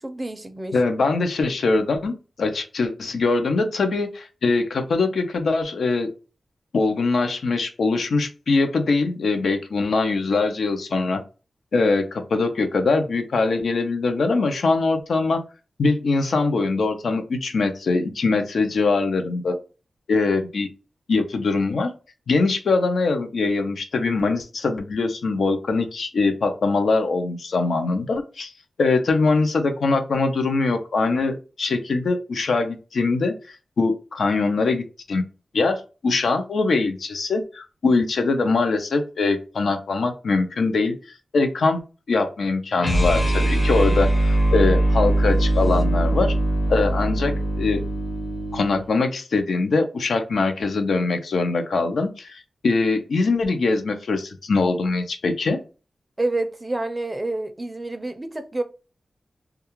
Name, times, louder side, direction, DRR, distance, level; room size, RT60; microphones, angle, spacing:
voice 1, 0.0-0.8 56.2-58.6, right 2 dB, 20° right, 0.4 m, -28 dB
voice 2, 0.7-6.1 6.7-11.2 11.7-15.4 15.8-19.5 20.1-20.7 21.1-21.9 22.3-28.5 28.8-35.2 35.5-41.8 42.1-46.3 46.7-47.8 48.5-55.6, left 3 dB, 90° left, 0.5 m, -22 dB
sound 1, 42.8-48.9, right 1 dB, 55° left, 1.0 m, -21 dB
2.3 x 2.3 x 2.9 m
wide cardioid pair, 115°, 0 cm